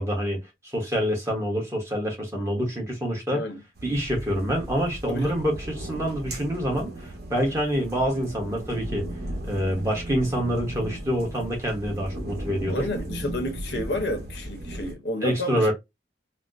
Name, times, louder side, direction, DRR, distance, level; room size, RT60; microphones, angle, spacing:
voice 1, 0.0-3.4 3.8-9.1 9.4-12.9 15.2-15.7, equal, 15° right, 1.0 m, -26 dB
sound 1, 3.8-14.9, right 1 dB, 60° right, 1.1 m, -36 dB
voice 2, 12.7-15.7, left 1 dB, 75° left, 0.9 m, -30 dB
4.2 x 2.0 x 2.5 m
head